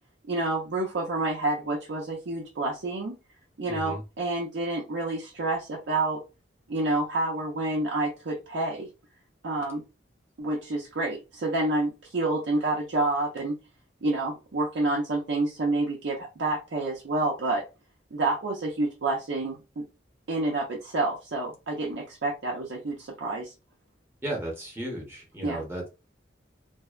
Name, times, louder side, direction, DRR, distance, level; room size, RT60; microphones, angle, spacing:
voice 1, 0.3-3.2 3.6-6.2 6.7-8.9 9.4-9.8 10.4-13.6 14.0-17.6 18.1-19.9 20.3-23.5 25.4-25.6, right 2 dB, 70° right, -2 dB, 0.6 m, -28 dB
voice 2, 3.7-4.0 24.2-25.9, right 1 dB, 15° right, -1 dB, 0.9 m, -34 dB
2.6 x 2.1 x 2.3 m, 0.28 s
head